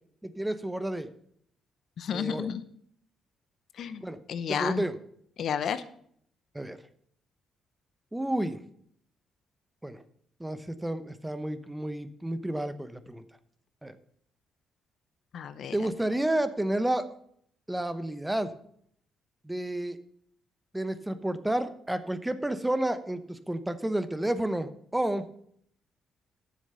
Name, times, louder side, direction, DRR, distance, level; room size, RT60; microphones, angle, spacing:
voice 1, 0.2-1.1 2.1-2.5 4.0-4.2 4.5-5.0 6.5-6.8 8.1-8.6 9.8-10.0 10.4-13.2 13.8-14.0 15.7-17.1 17.7-18.6 19.4-20.0 20.7-25.3, right 1 dB, 10° right, 12 dB, 0.8 m, -30 dB
voice 2, 2.0-2.6 3.8-4.8 5.4-5.8 15.3-15.8, left 8 dB, 65° left, 13 dB, 0.8 m, -32 dB
10.0 x 7.2 x 5.6 m, 0.65 s
cardioid pair, 90°, 0 cm